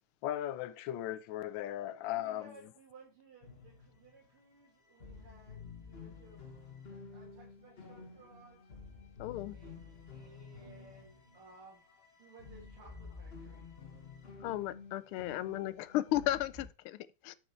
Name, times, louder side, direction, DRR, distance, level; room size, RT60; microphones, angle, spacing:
voice 1, 0.2-2.5, left 12 dB, 70° left, 1.3 m, -37 dB
voice 2, 2.1-6.5 6.8-8.7 9.5-9.7 10.1-11.8 12.2-13.7, right 3 dB, 85° right, 3.1 m, -58 dB
sound 1, 3.4-4.4 4.7-4.8 4.9-16.7, left 4 dB, 30° left, 1.6 m, -51 dB
voice 3, 9.2-9.6 14.4-17.1, left 14 dB, 90° left, 1.5 m, -34 dB
7.3 x 6.7 x 4.4 m
omnidirectional pair, 2.3 m